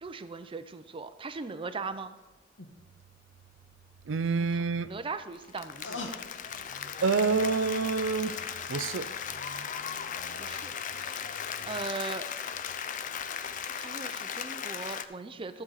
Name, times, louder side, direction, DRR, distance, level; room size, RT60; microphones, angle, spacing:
voice 1, 0.0-2.1 4.8-6.1 10.4-11.4 11.7-12.2 13.5-15.6, right 4 dB, 30° right, 0.5 m, -39 dB
sound 1, 2.2-2.3 2.6-2.7 4.6-7.7 8.1-8.2, left 3 dB, 75° left, 1.3 m, -44 dB
voice 2, 4.1-4.9 6.8-10.4, right 4 dB, 85° right, 0.5 m, -29 dB
Applause, 5.3-15.0, left 7 dB, 45° left, 0.5 m, -37 dB
12.5 x 7.7 x 4.0 m
head